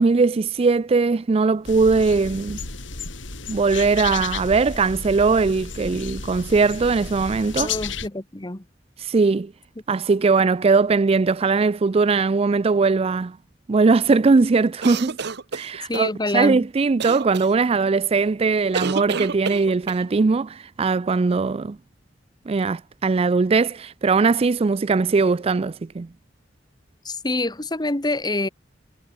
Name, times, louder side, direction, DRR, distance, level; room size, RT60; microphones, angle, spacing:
voice 1, 0.0-2.6 3.5-7.7 9.0-9.5 9.9-13.4 13.7-15.2 15.5-21.8 22.5-26.1, right 4 dB, 30° right, 0.4 m, -20 dB
sound 1, 1.6-8.1, left 5 dB, 80° left, 4.9 m, -33 dB
voice 2, 7.6-8.7 15.8-16.6 27.0-28.5, left 2 dB, 20° left, 1.6 m, -26 dB
sound 2, 14.8-16.1 17.0-17.5 18.7-20.0, right 5 dB, 60° right, 0.9 m, -29 dB
head